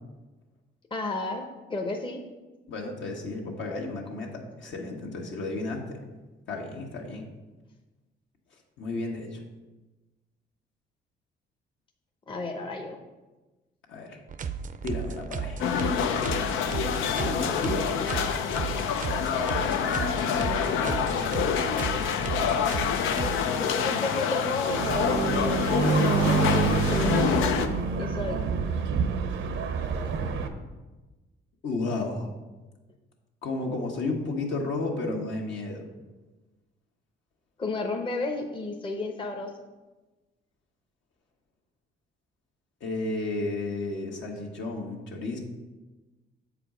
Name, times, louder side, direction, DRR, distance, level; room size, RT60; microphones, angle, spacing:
voice 1, 0.9-1.4 1.7-2.2 12.3-13.0 23.6-25.7 26.0-27.6 28.0-28.4 37.6-39.5, left 2 dB, 25° left, 3 dB, 0.8 m, -32 dB
voice 2, 2.7-6.0 6.5-7.3 8.8-9.4 13.9-14.2 14.8-15.6 16.1-16.3 17.1-17.9 20.6-21.5 31.6-32.3 33.4-35.9 42.8-45.4, left 2 dB, 70° left, 0 dB, 1.5 m, -33 dB
sound 1, 14.3-23.4, right 6 dB, 40° right, 0.5 m, -34 dB
sound 2, 15.6-27.7, left 7 dB, 90° left, 0.6 m, -27 dB
sound 3, 24.7-30.5, right 5 dB, 80° right, 0.7 m, -26 dB
7.2 x 5.0 x 5.0 m, 1.2 s
cardioid pair, 90°, 20 cm